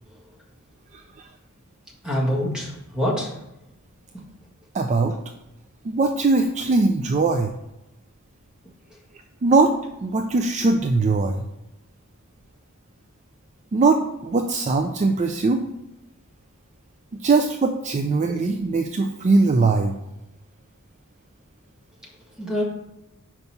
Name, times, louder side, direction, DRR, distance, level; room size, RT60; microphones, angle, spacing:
voice 1, 0.9-1.3 4.7-5.1 5.8-7.6 9.4-9.7 10.0-11.4 13.7-15.6 17.2-20.0, right 3 dB, 35° right, 5 dB, 0.4 m, -21 dB
voice 2, 2.0-3.3 4.1-4.2 22.4-22.6, equal, 5° right, -4 dB, 1.7 m, -25 dB
5.4 x 4.6 x 5.7 m, 0.91 s
head